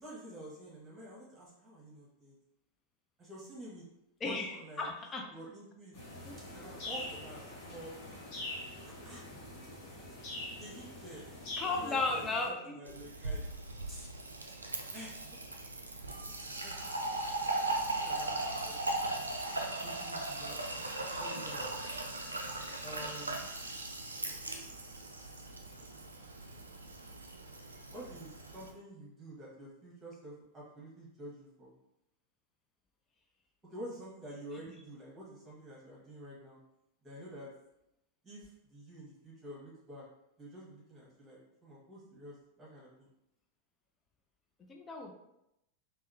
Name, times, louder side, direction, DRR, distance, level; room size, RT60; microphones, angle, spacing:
voice 1, 0.0-2.3 3.2-3.8 4.2-4.9 5.3-6.0 6.5-7.4 7.7-7.9 8.8-9.2 10.5-11.2 11.7-12.3 12.7-13.4 13.9-14.1 14.9-15.6 16.4-16.7 17.0-17.2 17.7-18.3 18.7-19.0 19.8-21.9 22.8-23.4 27.9-31.7 33.6-36.6 37.0-37.5 38.2-40.0 40.4-43.1, equal, 15° right, -6 dB, 1.3 m, -49 dB
voice 2, 4.2-5.3 6.2-6.3 6.7-6.8 11.6-12.8 44.7-45.1, left 3 dB, 20° left, 1 dB, 0.4 m, -35 dB
sound 1, 5.9-12.5, left 1 dB, 45° left, 0.8 m, -44 dB
Fill (with liquid), 12.9-28.7, right 2 dB, 80° right, 0.3 m, -38 dB
3.5 x 2.0 x 2.6 m, 0.85 s
figure-of-eight pair, 90°, 0 cm